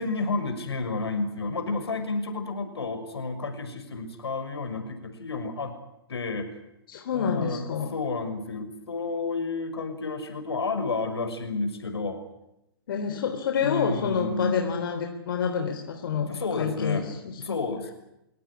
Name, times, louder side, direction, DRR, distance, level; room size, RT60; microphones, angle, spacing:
voice 1, 0.0-5.7 6.1-6.5 7.1-12.2 13.1-13.2 13.6-14.7 16.3-17.1 17.4-17.9, left 3 dB, 75° left, 8 dB, 6.0 m, -31 dB
voice 2, 6.9-7.9 12.9-16.3 16.6-17.4, left 6 dB, 55° left, 4 dB, 3.8 m, -28 dB
30.0 x 17.5 x 10.0 m, 0.89 s
figure-of-eight pair, 125°, 14 cm